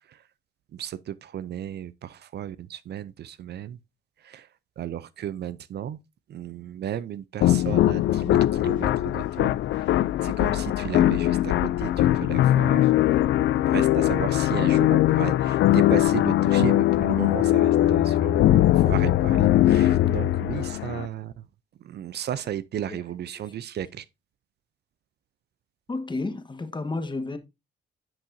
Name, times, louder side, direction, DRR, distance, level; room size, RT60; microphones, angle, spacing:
voice 1, 0.7-3.8 4.2-4.5 4.8-6.0 6.3-13.2 13.7-21.3 21.8-24.0, right 10 dB, 55° right, 0.5 m, -34 dB
sound 1, 7.4-21.1, left 13 dB, 70° left, 0.4 m, -21 dB
voice 2, 22.9-23.5 25.9-27.4, left 3 dB, 25° left, 1.2 m, -32 dB
10.5 x 5.8 x 2.6 m
cardioid pair, 90°, 20 cm